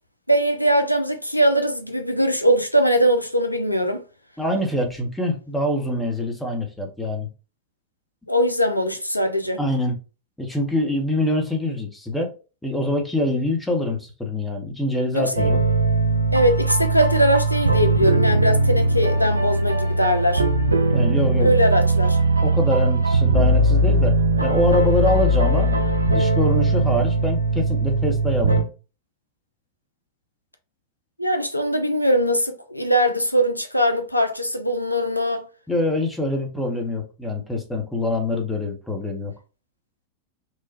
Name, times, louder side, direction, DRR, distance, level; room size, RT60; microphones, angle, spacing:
voice 1, 0.3-4.0 8.3-9.6 15.1-15.5 16.3-20.4 21.4-22.2 31.2-35.4, equal, 90° left, 0.3 m, -21 dB
voice 2, 4.4-7.3 9.6-10.0 10.4-12.3 12.6-15.6 20.9-21.5 22.4-28.6 35.7-39.3, left 1 dB, 5° left, 0.8 m, -24 dB
sound 1, 15.4-28.6, right 2 dB, 80° right, 0.4 m, -20 dB
3.0 x 2.1 x 2.7 m
figure-of-eight pair, 90°, 0 cm